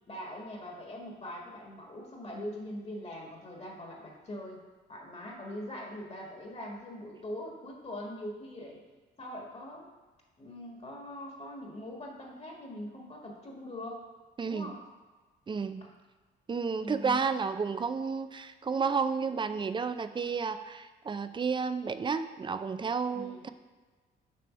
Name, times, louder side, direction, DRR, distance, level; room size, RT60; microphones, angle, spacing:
voice 1, 0.1-4.6 4.9-8.9 9.2-9.9 10.4-14.0 14.4-14.8 16.8-17.2 23.1-23.4, left 1 dB, 30° left, -1 dB, 1.4 m, -42 dB
voice 2, 14.4-14.7 15.5-15.9 16.5-23.5, right 5 dB, 25° right, 11 dB, 0.4 m, -31 dB
6.8 x 3.3 x 6.1 m, 1.3 s
cardioid pair, 90°, 20 cm